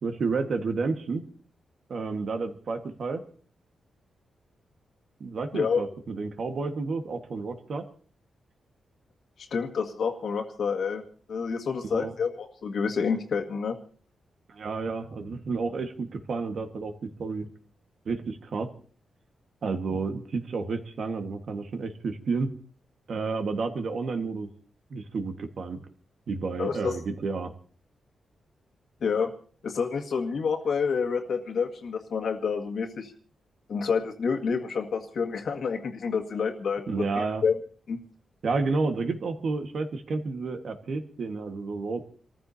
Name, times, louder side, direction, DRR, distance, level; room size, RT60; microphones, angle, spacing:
voice 1, 0.0-1.2 1.9-3.2 5.2-7.8 11.8-12.1 14.5-17.5 18.0-18.7 19.6-22.5 23.1-24.5 24.9-25.8 26.3-27.5 36.9-37.4 38.4-42.0, right 4 dB, 55° right, 7 dB, 1.6 m, -31 dB
voice 2, 5.5-5.8 9.5-11.0 11.3-13.7 26.6-27.0 29.0-29.3 29.6-33.1 33.7-37.6 37.9-38.0, left 5 dB, 60° left, 3 dB, 1.9 m, -28 dB
29.0 x 14.5 x 2.8 m, 0.42 s
wide cardioid pair, 140°, 0 cm